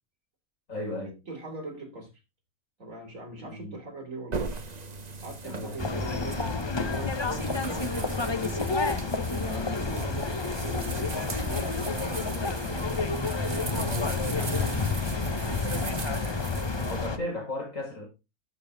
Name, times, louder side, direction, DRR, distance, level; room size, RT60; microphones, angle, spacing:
voice 1, 0.7-1.1 3.4-3.8 5.4-5.8 13.8-14.1 16.8-18.0, left 1 dB, 65° left, -2 dB, 6.2 m, -35 dB
voice 2, 1.3-2.1 2.8-4.5 5.2-6.4 6.9-13.1 13.6-15.1, right 2 dB, 65° right, 2 dB, 3.8 m, -41 dB
sound 1, 4.3-17.1, right 4 dB, 30° right, 1.1 m, -39 dB
sound 2, 5.8-17.2, left 3 dB, 25° left, 0.7 m, -29 dB
12.0 x 7.1 x 3.9 m, 0.27 s
omnidirectional pair, 1.5 m